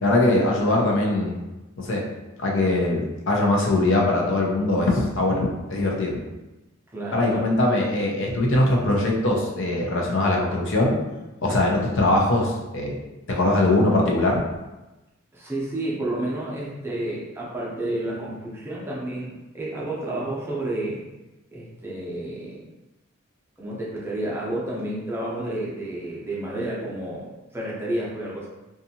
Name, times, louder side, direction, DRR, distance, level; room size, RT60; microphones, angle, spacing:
voice 1, 0.0-1.4 1.8-2.1 2.4-6.2 7.1-11.0 11.4-13.0 13.3-14.4, left 2 dB, 65° left, -1 dB, 0.6 m, -21 dB
voice 2, 6.9-7.5 15.3-21.0 21.5-22.6 23.6-28.5, right 1 dB, 10° right, -6 dB, 0.6 m, -30 dB
2.6 x 2.4 x 2.7 m, 1.0 s
head